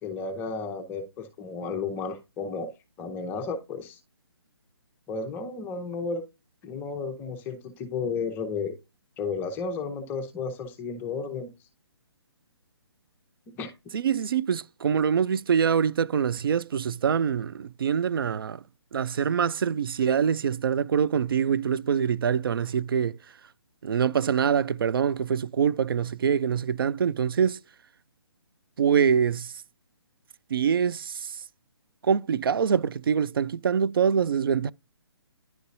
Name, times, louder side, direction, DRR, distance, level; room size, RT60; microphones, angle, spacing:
voice 1, 0.0-2.7 3.0-4.0 5.1-6.2 6.6-8.8 9.2-11.5 13.5-13.7, left 4 dB, 15° left, 0.7 m, -33 dB
voice 2, 13.9-18.6 18.9-23.2 23.8-27.6 28.8-29.5 30.5-31.4 32.0-34.7, right 7 dB, 55° right, 0.4 m, -24 dB
10.5 x 4.0 x 2.6 m
figure-of-eight pair, 140°, 14 cm